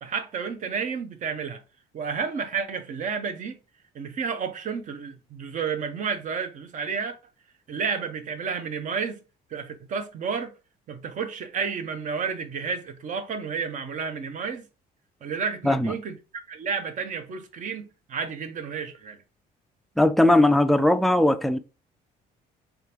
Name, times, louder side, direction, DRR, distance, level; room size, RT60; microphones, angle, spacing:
voice 1, 0.0-1.6 1.9-3.6 3.9-7.2 7.7-9.2 9.5-10.5 10.9-14.6 15.2-16.2 16.5-19.2, right 6 dB, 50° right, 0.7 m, -31 dB
voice 2, 20.0-21.6, left 1 dB, ahead, 0.3 m, -19 dB
3.7 x 3.4 x 2.9 m
cardioid pair, 110°, 17 cm